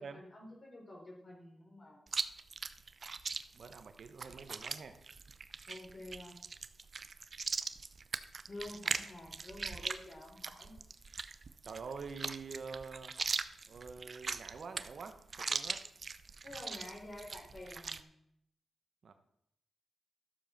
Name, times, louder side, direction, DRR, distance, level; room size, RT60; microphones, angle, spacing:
voice 1, 0.0-2.0 5.7-6.4 8.5-10.8 16.4-18.1, left 1 dB, 50° left, -1 dB, 4.6 m, -49 dB
Chewing mastication, 2.1-18.0, right 4 dB, 55° right, 0.6 m, -41 dB
voice 2, 3.5-5.0 11.6-13.1 13.7-15.8 19.0-19.1, right 5 dB, 70° right, 8 dB, 1.1 m, -46 dB
12.5 x 7.2 x 6.0 m, 0.76 s
cardioid pair, 55°, 0 cm